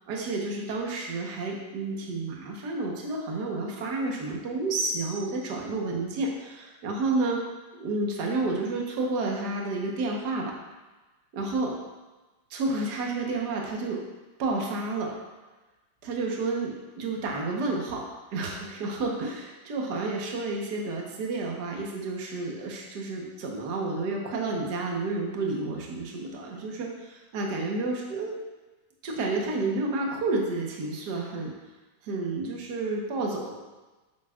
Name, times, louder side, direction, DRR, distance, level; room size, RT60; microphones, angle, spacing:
voice 1, 0.1-7.4 7.8-10.5 11.3-11.8 12.5-14.0 14.4-15.1 16.0-18.0 18.3-28.4 29.0-31.5 32.0-33.6, right 3 dB, 80° right, -1 dB, 0.9 m, -30 dB
10.5 x 8.7 x 2.5 m, 1.2 s
omnidirectional pair, 3.8 m